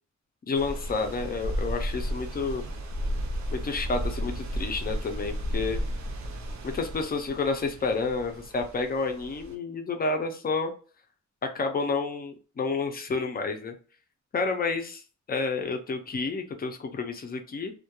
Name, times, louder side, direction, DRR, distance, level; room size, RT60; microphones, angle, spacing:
voice 1, 0.5-2.7 3.5-5.8 6.6-10.7 11.4-13.8 14.3-15.0 15.3-17.7, left 4 dB, 30° left, 5 dB, 0.4 m, -30 dB
sound 1, 0.5-9.5, equal, 70° right, 0.6 m, -34 dB
2.2 x 2.1 x 2.8 m, 0.40 s
wide cardioid pair, 180°, 30 cm